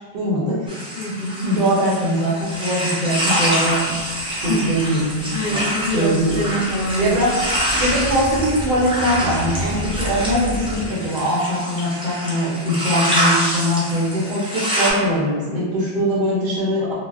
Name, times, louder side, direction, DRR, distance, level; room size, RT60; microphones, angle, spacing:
voice 1, 0.1-0.7 1.4-3.9 4.4-5.6 5.9-6.4 7.0-7.3 7.7-16.9, equal, 50° right, -7 dB, 0.8 m, -21 dB
sound 1, 0.7-14.9, equal, 10° right, 0.3 m, -26 dB
voice 2, 1.0-1.4 4.5-4.8 5.3-7.2, equal, 65° left, -3 dB, 0.7 m, -25 dB
sound 2, 3.3-10.9, right 1 dB, 20° left, 0.9 m, -32 dB
3.0 x 2.0 x 2.3 m, 1.5 s
omnidirectional pair, 1.1 m